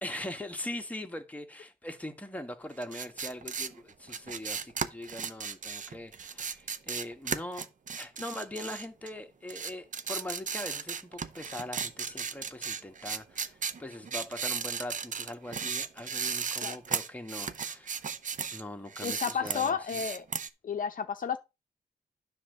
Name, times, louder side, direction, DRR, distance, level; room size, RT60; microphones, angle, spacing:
voice 1, 0.0-7.7 7.9-18.0 18.5-20.0, left 1 dB, 10° left, 1.2 m, -41 dB
sound 1, 2.8-9.2 9.5-18.6 18.9-20.5, right 6 dB, 50° right, 0.6 m, -35 dB
voice 2, 19.0-20.2 20.6-21.4, left 7 dB, 55° left, 0.6 m, -32 dB
9.8 x 3.5 x 6.5 m
wide cardioid pair, 115°, 16 cm